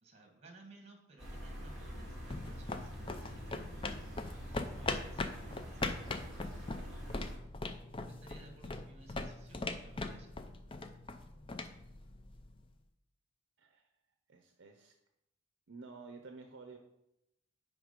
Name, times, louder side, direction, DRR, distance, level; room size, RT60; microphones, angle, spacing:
voice 1, 0.0-3.8 4.4-7.4 8.1-10.5, right 2 dB, 30° right, 2 dB, 1.5 m, -59 dB
sound 1, 1.2-7.3, equal, 5° left, 2.7 m, -45 dB
sound 2, 2.1-12.6, left 3 dB, 25° left, 0.4 m, -41 dB
voice 2, 13.6-13.9 14.3-14.9 15.7-16.8, right 4 dB, 60° right, 4 dB, 0.6 m, -51 dB
9.9 x 3.7 x 5.2 m, 0.86 s
head